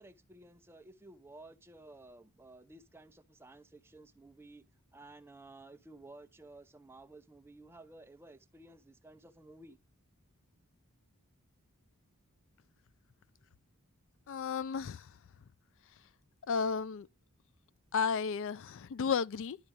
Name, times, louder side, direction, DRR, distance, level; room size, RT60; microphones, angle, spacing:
voice 1, 0.0-4.6 4.9-9.8, right 2 dB, 10° right, 0.6 m, -54 dB
voice 2, 14.3-15.1 16.5-17.1 17.9-19.6, left 6 dB, 60° left, 0.4 m, -33 dB
11.5 x 4.4 x 5.1 m
head